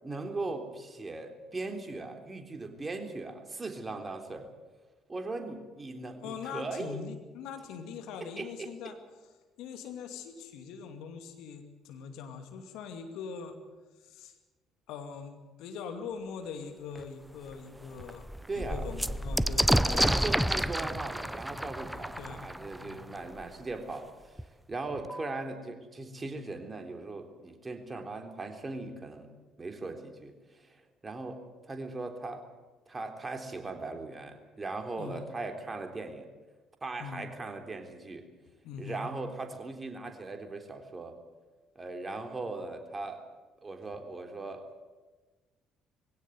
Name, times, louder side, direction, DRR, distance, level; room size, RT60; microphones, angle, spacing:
voice 1, 0.0-4.5 5.1-7.0 8.2-8.7 18.5-18.9 19.7-24.4 24.7-29.3 29.6-30.8 31.0-32.4 32.9-36.3 36.8-38.3 38.8-41.2 41.8-43.2 43.6-44.9, right 3 dB, 25° right, 5 dB, 3.6 m, -39 dB
voice 2, 6.2-9.0 9.6-13.5 14.0-14.3 14.9-18.3 18.5-20.5 21.9-22.5 22.8-23.1 35.0-35.3 37.0-37.3 38.6-39.1, left 6 dB, 65° left, 6 dB, 2.5 m, -42 dB
sound 1, 17.0-17.1 17.5-17.6 17.9-23.4 24.4-24.5 24.7-25.4, right 1 dB, 5° right, 0.7 m, -30 dB
21.5 x 17.0 x 9.5 m, 1.3 s
hypercardioid pair, 50°, 0 cm